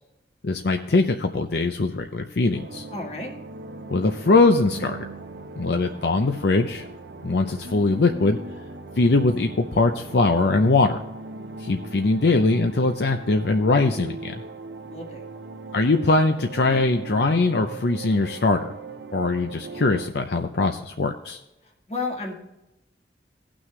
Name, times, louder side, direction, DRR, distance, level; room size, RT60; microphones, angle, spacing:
voice 1, 0.4-2.9 3.9-5.0 5.6-6.8 7.2-8.4 9.0-11.0 11.6-14.4 15.7-18.7 19.1-21.4, left 3 dB, 65° left, 5 dB, 0.6 m, -21 dB
sound 1, 2.5-20.1, right 3 dB, 75° right, 0.8 m, -39 dB
voice 2, 2.9-3.3 14.9-15.3 21.9-22.3, left 3 dB, 35° left, 0 dB, 1.8 m, -31 dB
18.0 x 6.2 x 3.2 m, 0.94 s
head